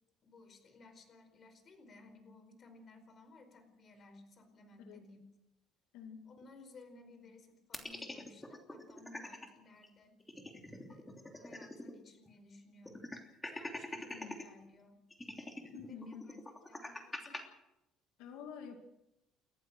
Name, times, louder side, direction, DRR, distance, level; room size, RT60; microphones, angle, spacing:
voice 1, 0.2-5.3 6.3-10.2 10.9-13.0 13.4-15.0 15.8-16.4 16.6-17.4, left 3 dB, 35° left, 8 dB, 4.8 m, -58 dB
voice 2, 5.9-6.3 14.1-14.4 15.7-16.4 18.2-18.8, left 6 dB, 90° left, 5 dB, 2.4 m, -48 dB
sound 1, 7.7-9.5 9.8-9.9 10.2-12.0 12.3-12.4 12.9-14.4 15.1-17.4, left 2 dB, 10° left, 3.1 m, -44 dB
29.5 x 14.5 x 6.3 m, 0.90 s
cardioid pair, 135°, 0 cm